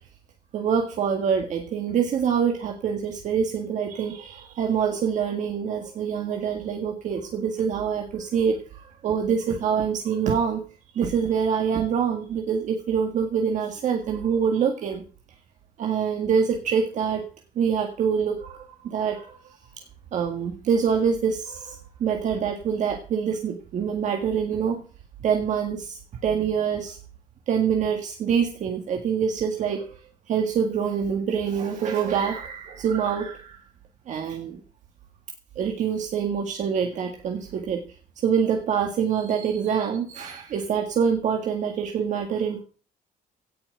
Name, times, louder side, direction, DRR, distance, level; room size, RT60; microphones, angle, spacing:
voice 1, 0.5-10.6 10.9-15.0 15.8-17.2 17.6-19.4 20.1-24.8 25.2-27.0 27.5-29.8 30.3-33.6 34.1-34.6 35.6-37.8 38.2-42.6, right 7 dB, 50° right, 3 dB, 1.9 m, -25 dB
17.0 x 6.1 x 7.8 m, 0.39 s
cardioid pair, 160°, 16 cm